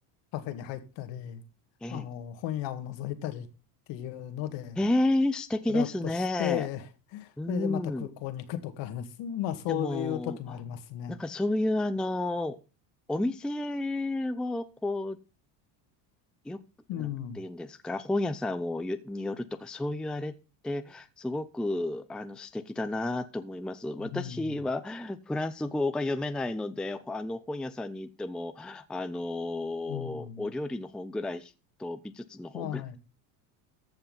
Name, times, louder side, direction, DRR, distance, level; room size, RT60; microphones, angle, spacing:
voice 1, 0.3-1.4 1.9-3.5 3.9-4.8 5.7-5.9 6.4-6.9 7.1-11.2 16.9-17.4 24.0-24.5 29.9-30.5 32.5-33.0, left 11 dB, 70° left, 1.9 m, -35 dB
voice 2, 4.8-6.7 7.4-8.1 9.7-10.4 11.1-12.6 13.1-15.2 16.5-16.6 16.9-20.3 20.6-31.5 31.8-33.0, left 2 dB, ahead, 0.5 m, -31 dB
14.5 x 5.6 x 5.5 m
supercardioid pair, 110°, 46 cm